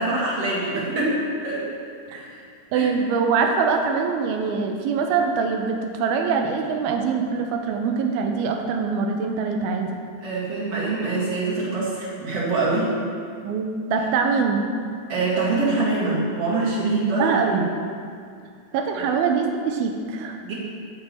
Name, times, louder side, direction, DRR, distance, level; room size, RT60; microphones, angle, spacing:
voice 1, 0.0-1.6 2.1-2.3 2.7-2.9 10.2-12.9 15.1-17.6 20.4-20.5, right 3 dB, 45° right, -7 dB, 2.7 m, -24 dB
voice 2, 2.7-10.0 13.4-14.7 16.8-17.7 18.7-20.4, right 5 dB, 80° right, 3 dB, 2.5 m, -23 dB
13.5 x 6.7 x 3.2 m, 2.3 s
omnidirectional pair, 4.5 m